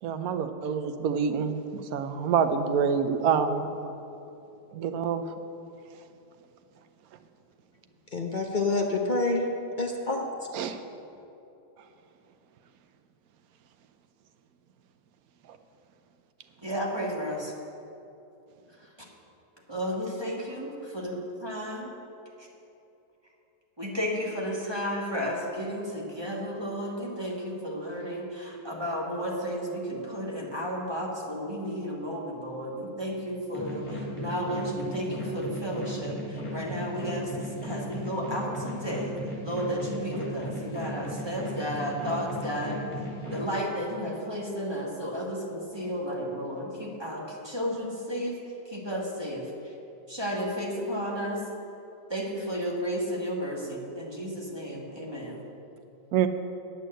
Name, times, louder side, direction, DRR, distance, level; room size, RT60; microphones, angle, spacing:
voice 1, 0.0-3.7 4.7-5.2 10.5-10.8 15.5-15.6 56.1-56.3, right 7 dB, 65° right, 8 dB, 1.1 m, -27 dB
voice 2, 8.1-9.4 9.8-10.3, left 3 dB, 45° left, 1 dB, 0.6 m, -27 dB
voice 3, 16.6-17.5 19.7-21.9 23.8-33.8 34.1-39.1 39.4-42.8 43.3-48.4 48.7-49.4 50.1-51.4 52.1-55.4, equal, 15° right, -3 dB, 1.4 m, -33 dB
sound 1, 33.5-43.5, equal, 25° left, 3.0 m, -36 dB
9.4 x 8.3 x 7.7 m, 2.9 s
omnidirectional pair, 1.9 m